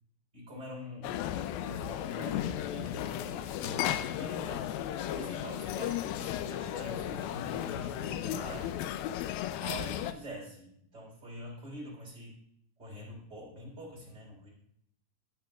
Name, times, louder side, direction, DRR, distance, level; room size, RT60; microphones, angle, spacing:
voice 1, 0.3-1.1 1.6-4.7 5.0-8.7 9.6-12.3 12.8-14.5, equal, 20° right, -4 dB, 3.4 m, -45 dB
sound 1, 1.0-10.1, left 11 dB, 85° left, 2.1 m, -35 dB
sound 2, 2.2-8.8, equal, 50° left, 3.6 m, -54 dB
19.5 x 6.7 x 2.3 m, 0.72 s
omnidirectional pair, 4.7 m